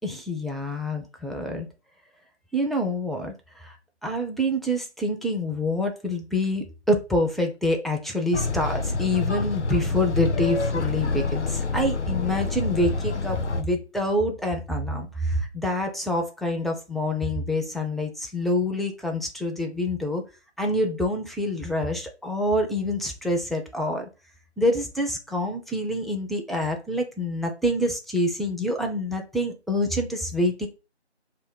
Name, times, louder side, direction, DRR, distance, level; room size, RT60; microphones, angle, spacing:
voice 1, 0.0-1.7 2.5-3.8 4.0-20.2 20.6-24.1 24.6-30.7, left 1 dB, ahead, 2 dB, 0.4 m, -26 dB
sound 1, 8.3-13.6, left 3 dB, 80° left, 0.5 m, -27 dB
2.1 x 2.0 x 3.7 m, 0.30 s
figure-of-eight pair, 180°, 35 cm